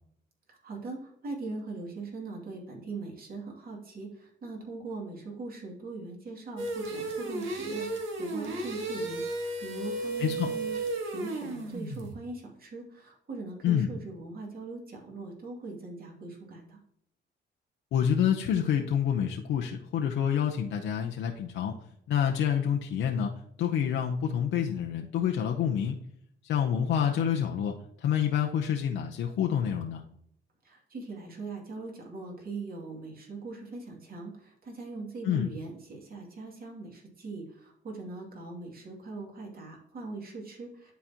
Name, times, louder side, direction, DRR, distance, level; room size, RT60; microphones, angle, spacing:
voice 1, 0.5-16.8 30.6-40.9, right 3 dB, 50° right, -1 dB, 2.5 m, -41 dB
sound 1, 6.6-12.1, right 2 dB, 80° right, 1.6 m, -34 dB
voice 2, 17.9-21.8 22.1-23.3 23.6-26.0 26.4-30.0 35.2-35.5, left 8 dB, 80° left, 2 dB, 0.8 m, -27 dB
11.5 x 4.1 x 2.9 m, 0.72 s
cardioid pair, 90°, 20 cm